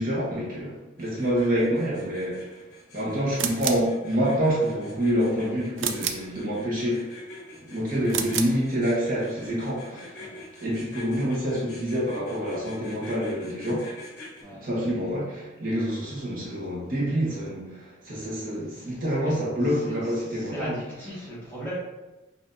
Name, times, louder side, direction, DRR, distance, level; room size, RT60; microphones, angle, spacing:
voice 1, 0.0-2.6 2.9-7.2 7.6-10.2 10.6-13.9 14.6-20.8, equal, 45° right, -6 dB, 1.0 m, -27 dB
sound 1, 1.0-14.4, left 2 dB, 50° left, 1.2 m, -46 dB
sound 2, 3.3-3.9 5.8-6.3 8.0-8.6, right 8 dB, 70° right, 0.4 m, -29 dB
voice 2, 9.9-10.5 14.4-14.7 18.5-21.8, right 1 dB, 10° left, -9 dB, 1.3 m, -40 dB
5.4 x 2.6 x 2.6 m, 1.1 s
head